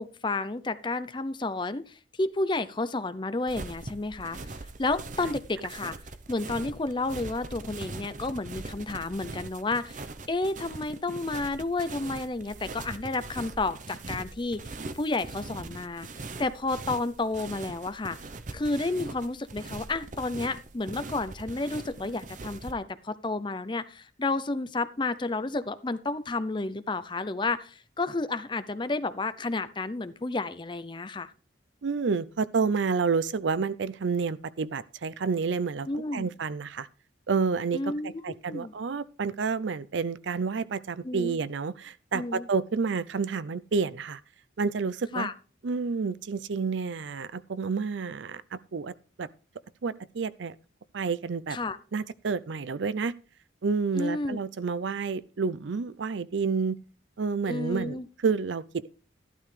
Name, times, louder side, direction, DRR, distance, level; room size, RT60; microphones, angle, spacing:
voice 1, 0.0-4.5 4.8-6.0 6.3-10.0 10.3-14.6 14.9-16.1 16.4-18.2 18.5-31.3 35.9-36.3 37.7-38.7 41.0-41.4 42.1-42.5 45.1-45.3 51.5-51.8 53.9-54.4 57.5-58.1, left 3 dB, 25° left, 0.5 m, -31 dB
sound 1, 3.5-22.7, right 3 dB, 40° right, 0.7 m, -41 dB
voice 2, 31.8-35.9 36.1-36.9 37.3-44.2 44.6-45.3 45.6-49.3 49.8-50.6 50.9-51.6 51.9-53.1 53.6-56.8 57.2-58.0 58.2-58.6, right 5 dB, 75° right, 0.5 m, -29 dB
12.5 x 12.0 x 3.3 m
head